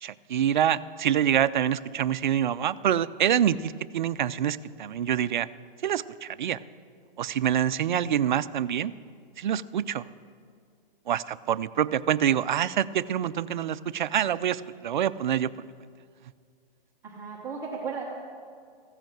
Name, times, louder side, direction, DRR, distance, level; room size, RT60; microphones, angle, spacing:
voice 1, 0.0-5.5 5.8-6.6 7.2-8.9 9.4-10.1 11.1-15.5, right 10 dB, 55° right, 14 dB, 0.5 m, -26 dB
voice 2, 17.0-18.0, right 5 dB, 10° right, -5 dB, 1.0 m, -35 dB
15.0 x 8.0 x 7.4 m, 2.2 s
hypercardioid pair, 165°, 29 cm